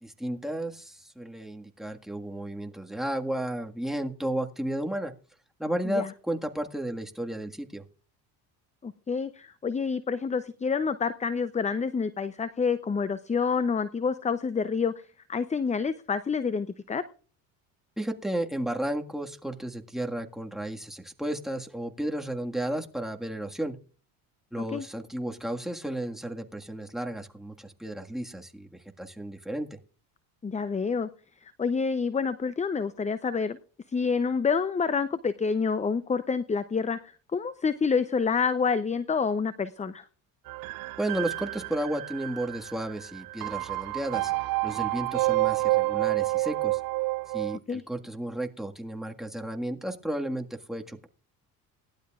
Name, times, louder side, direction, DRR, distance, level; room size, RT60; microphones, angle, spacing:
voice 1, 0.0-5.1 5.6-7.8 18.0-23.8 24.5-29.8 41.0-44.3 44.6-46.8 47.3-51.1, right 1 dB, ahead, 2 dB, 1.7 m, -33 dB
voice 2, 8.8-14.9 15.3-17.0 24.7-24.9 30.4-31.1 31.4-33.6 33.9-37.0 37.3-40.0 47.7-47.8, left 5 dB, 15° left, 14 dB, 0.6 m, -28 dB
sound 1, 40.5-47.6, right 21 dB, 50° right, 0.4 m, -29 dB
18.5 x 12.0 x 2.4 m, 0.39 s
hypercardioid pair, 70°, 46 cm